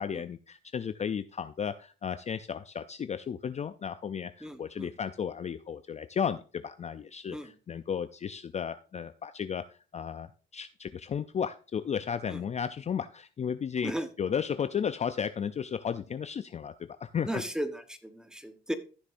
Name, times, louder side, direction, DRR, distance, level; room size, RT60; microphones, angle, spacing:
voice 1, 0.0-13.9 14.2-16.7 17.0-17.4, left 7 dB, 35° left, 11 dB, 0.4 m, -34 dB
voice 2, 4.4-4.9 7.3-7.5 12.3-12.4 13.8-14.1 17.2-18.7, equal, 5° right, 9 dB, 1.1 m, -36 dB
14.5 x 6.4 x 2.6 m, 0.36 s
cardioid pair, 90°, 20 cm